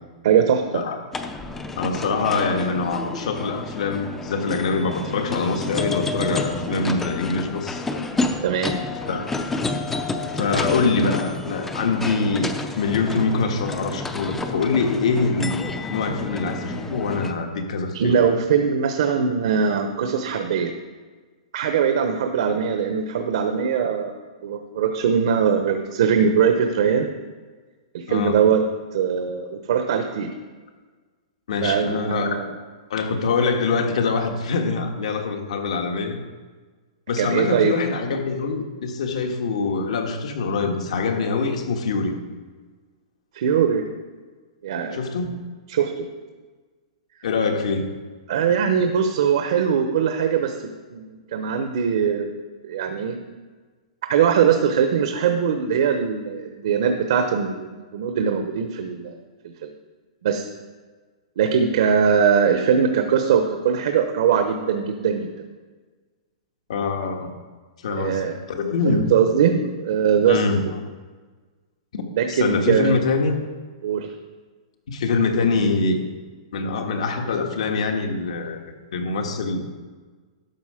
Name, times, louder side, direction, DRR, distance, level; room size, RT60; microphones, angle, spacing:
voice 1, 0.2-0.8 8.4-8.8 17.9-20.7 21.5-27.1 27.9-28.6 28.9-30.3 31.6-32.5 37.2-37.7 43.3-43.9 44.6-45.0 45.7-46.1 48.3-50.5 50.9-52.3 52.6-53.2 54.1-59.2 59.6-59.7 60.2-60.5 61.4-65.3 67.9-68.3 68.8-70.4 72.1-73.0 73.8-74.1, right 7 dB, 60° right, 6 dB, 1.0 m, -21 dB
sound 1, 1.1-17.3, left 3 dB, 5° left, 0.5 m, -30 dB
voice 2, 1.8-7.8 9.1-9.3 10.3-18.2 28.1-28.4 31.5-32.4 32.9-36.2 37.1-42.2 44.9-45.4 47.2-47.9 66.7-67.3 67.8-69.1 70.3-70.6 71.9-73.4 74.9-76.0 76.5-78.6 78.9-79.6, left 4 dB, 70° left, 4 dB, 1.6 m, -24 dB
12.0 x 6.7 x 5.0 m, 1.4 s
hypercardioid pair, 160°, 4 cm